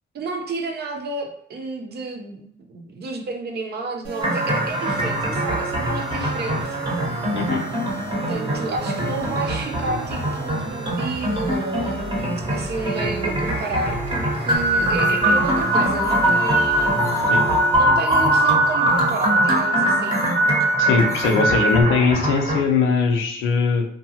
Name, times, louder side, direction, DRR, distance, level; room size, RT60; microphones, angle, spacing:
voice 1, 0.1-6.8 8.3-17.0 17.8-20.3, right 3 dB, 55° right, 3 dB, 0.6 m, -31 dB
sound 1, 4.0-17.8, right 3 dB, 80° right, 0.9 m, -33 dB
sound 2, 4.2-22.6, right 1 dB, 25° right, 0.8 m, -24 dB
sound 3, 14.5-21.8, right 1 dB, 15° left, 0.5 m, -22 dB
voice 2, 20.8-23.9, left 4 dB, 85° left, 2 dB, 0.6 m, -20 dB
2.7 x 2.2 x 2.7 m, 0.69 s
cardioid pair, 90°, 20 cm